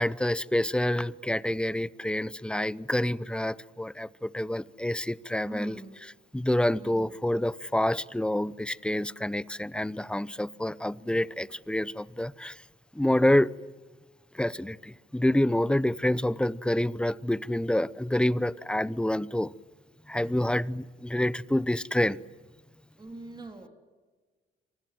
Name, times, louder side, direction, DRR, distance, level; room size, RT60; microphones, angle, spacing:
voice 1, 0.0-5.8 6.3-12.6 12.9-13.5 14.3-19.5 20.1-22.2, left 1 dB, 5° left, 0.7 m, -27 dB
voice 2, 5.4-5.9 6.7-7.1 23.0-23.7, right 2 dB, 20° right, 3.5 m, -43 dB
28.0 x 23.5 x 7.8 m
cardioid pair, 90°, 20 cm